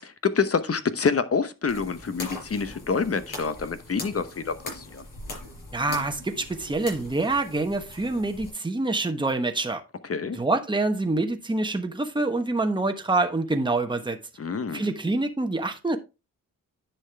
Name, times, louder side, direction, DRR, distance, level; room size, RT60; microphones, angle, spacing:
voice 1, 0.2-5.0 10.1-10.4 14.4-14.9, left 5 dB, 40° left, 1.0 m, -27 dB
sound 1, 1.7-8.5, left 2 dB, 65° left, 4.8 m, -41 dB
voice 2, 5.7-9.8 10.3-14.2 14.7-16.0, right 2 dB, 15° right, 1.1 m, -26 dB
10.0 x 5.8 x 3.4 m
cardioid pair, 70°, 34 cm